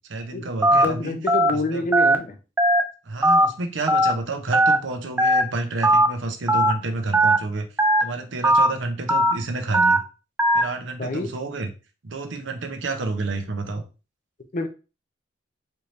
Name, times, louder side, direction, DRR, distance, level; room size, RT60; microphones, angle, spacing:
voice 1, 0.1-1.2 1.5-1.9 3.0-7.7 8.0-10.0 10.5-11.7 12.0-13.8, right 3 dB, 75° right, 5 dB, 0.8 m, -30 dB
Telephone, 0.6-0.8 1.3-1.5 1.9-2.1 2.6-2.8 3.2-3.5 3.9-4.1 4.5-4.8 5.2-5.4 5.8-6.1 6.5-6.7 7.1-7.4 7.8-8.0 8.4-8.7 9.1-9.3 9.7-10.0 10.4-10.6, right 1 dB, 10° right, 0.4 m, -17 dB
voice 2, 0.7-2.4 11.0-11.3 14.5-14.7, left 2 dB, 45° left, 7 dB, 0.6 m, -27 dB
4.5 x 2.7 x 3.3 m, 0.32 s
head